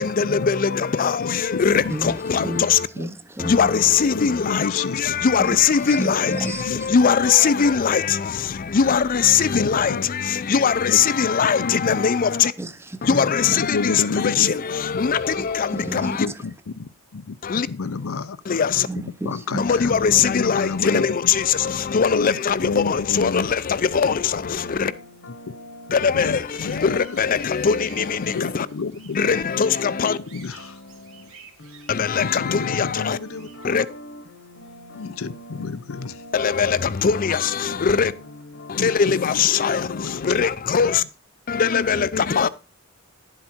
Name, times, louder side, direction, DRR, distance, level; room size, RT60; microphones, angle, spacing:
voice 1, 0.0-2.9 3.4-12.5 13.0-16.3 17.4-17.7 18.5-18.9 19.6-24.9 25.9-28.7 29.1-30.2 31.9-33.2 33.6-33.9 36.3-38.1 38.7-41.0 41.5-42.5, left 6 dB, 40° left, 0.5 m, -21 dB
voice 2, 1.2-2.5 3.0-3.1 4.1-5.1 6.3-6.8 9.5-10.1 10.9-11.0 11.4-12.0 13.7-14.5 15.9-17.4 17.7-18.4 19.2-20.0 20.2-21.3 21.9-23.5 24.0-24.1 26.1-27.2 28.2-29.2 30.0-30.8 32.2-33.5 34.9-36.2 38.7-39.5 39.8-40.5, left 4 dB, 85° left, 0.6 m, -30 dB
voice 3, 3.0-3.7 5.5-5.6 6.0-6.9 12.6-13.6 15.7-16.3 18.9-19.7, right 2 dB, 10° right, 0.7 m, -31 dB
sound 1, 23.6-39.8, left 1 dB, 60° left, 1.1 m, -44 dB
sound 2, 26.5-33.7, right 6 dB, 80° right, 2.6 m, -50 dB
11.0 x 7.9 x 4.4 m
head